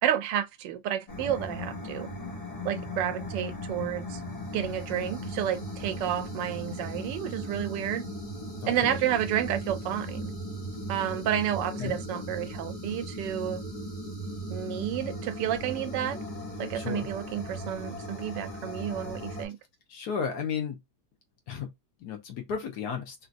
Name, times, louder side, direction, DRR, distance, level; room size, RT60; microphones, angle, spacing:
voice 1, 0.0-2.1 2.6-4.2 4.5-8.0 8.7-10.3 10.9-13.6 14.5-16.2 16.6-19.6, right 11 dB, 85° right, 1.2 m, -30 dB
sound 1, 1.1-19.4, equal, 25° left, 1.3 m, -37 dB
voice 2, 8.6-9.0 11.8-12.0 16.7-17.1 19.9-20.8 21.5-21.7 22.0-23.1, left 7 dB, 70° left, 1.4 m, -33 dB
3.2 x 2.8 x 2.6 m
omnidirectional pair, 1.9 m